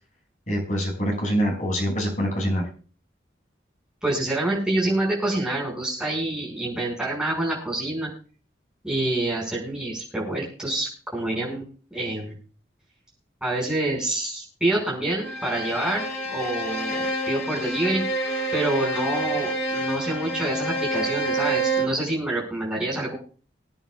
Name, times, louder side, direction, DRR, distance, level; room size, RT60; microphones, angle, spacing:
voice 1, 0.5-2.6, equal, 45° left, -2 dB, 6.1 m, -25 dB
voice 2, 4.0-8.1 8.8-11.6 11.9-12.3 13.4-18.1 18.5-23.1, right 2 dB, 5° right, -4 dB, 5.6 m, -27 dB
Bowed string instrument, 15.2-22.1, right 1 dB, 65° left, 2.2 m, -28 dB
26.5 x 9.1 x 2.4 m, 0.40 s
head